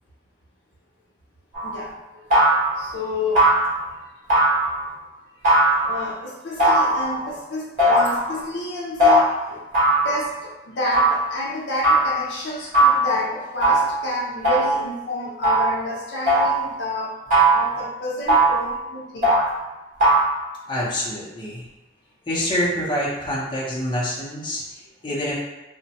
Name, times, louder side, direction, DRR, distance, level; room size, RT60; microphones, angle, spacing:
sound 1, 1.5-1.8 2.3-2.9 3.4-3.8 4.3-4.9 5.4-6.1 6.6-7.3 7.8-8.3 9.0-9.2 9.7-10.3 10.9-11.2 11.8-12.2 12.7-13.1 13.6-14.0 14.4-14.9 15.4-15.8 16.3-16.7 17.3-17.8 18.3-18.7 19.2-19.5 20.0-20.3, right 1 dB, 45° right, 1.3 m, -18 dB
voice 1, 1.6-1.9 2.8-3.5 5.8-9.6 10.0-17.2 17.5-19.3, left 2 dB, 70° left, -4 dB, 0.6 m, -29 dB
voice 2, 20.7-21.7 22.3-25.4, equal, 25° left, -6 dB, 0.7 m, -26 dB
3.0 x 2.1 x 2.8 m, 1.1 s
head